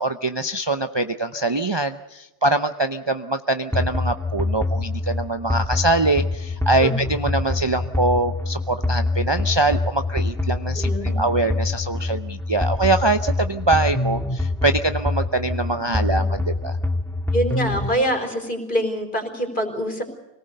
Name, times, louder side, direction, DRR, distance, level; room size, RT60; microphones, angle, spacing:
voice 1, 0.0-16.8, right 2 dB, 25° right, 8 dB, 0.7 m, -23 dB
sound 1, 3.7-17.9, left 2 dB, ahead, 1.9 m, -25 dB
voice 2, 10.7-11.4 15.8-16.3 17.3-20.0, equal, 45° left, 4 dB, 4.4 m, -25 dB
25.5 x 19.0 x 6.7 m, 0.97 s
omnidirectional pair, 1.1 m